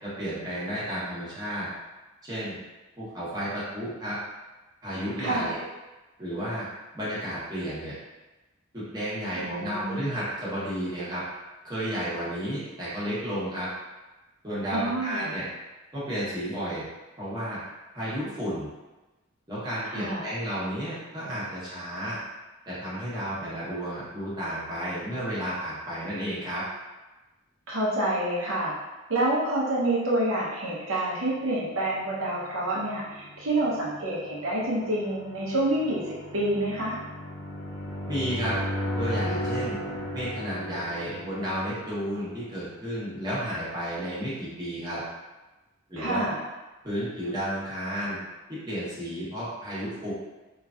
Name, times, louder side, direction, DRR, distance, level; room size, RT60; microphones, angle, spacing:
voice 1, 0.0-1.7 2.2-2.6 3.0-4.2 4.8-5.6 6.2-6.7 6.9-8.0 8.7-11.2 11.6-13.7 14.4-15.4 15.9-16.8 17.2-17.6 17.9-18.7 19.5-22.2 22.7-26.6 38.1-38.6 39.0-39.8 40.1-45.0 45.9-46.3 46.8-48.2 48.5-50.1, equal, 20° right, -10 dB, 1.0 m, -32 dB
voice 2, 5.2-5.5 9.4-10.0 14.7-15.3 19.9-20.2 27.7-28.7 29.1-36.0 36.3-37.0 46.0-46.4, right 1 dB, 70° right, -6 dB, 0.9 m, -27 dB
sound 1, 32.0-42.8, left 1 dB, 70° left, 0.7 m, -36 dB
3.0 x 2.4 x 2.4 m, 1.1 s
head